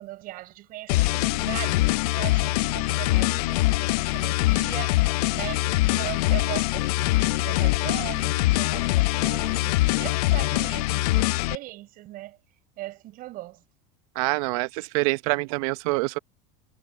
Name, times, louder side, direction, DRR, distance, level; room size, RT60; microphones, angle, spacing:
voice 1, 0.0-12.4 12.8-13.6, right 17 dB, 50° right, 5.9 m, -39 dB
sound 1, 0.9-11.5, left 20 dB, 90° left, 0.4 m, -23 dB
voice 2, 14.1-16.2, right 23 dB, 70° right, 0.8 m, -26 dB
supercardioid pair, 135°, 19 cm